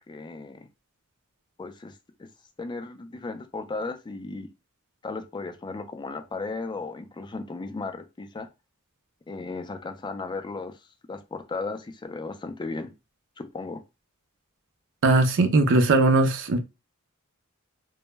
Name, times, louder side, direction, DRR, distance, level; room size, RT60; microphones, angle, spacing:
voice 1, 0.1-0.7 1.6-2.3 2.6-4.5 5.0-8.5 9.3-10.8 11.1-12.9 13.4-13.8, left 3 dB, 20° left, 0.3 m, -35 dB
voice 2, 15.0-16.6, right 2 dB, 60° right, 0.4 m, -19 dB
2.1 x 2.0 x 3.1 m
head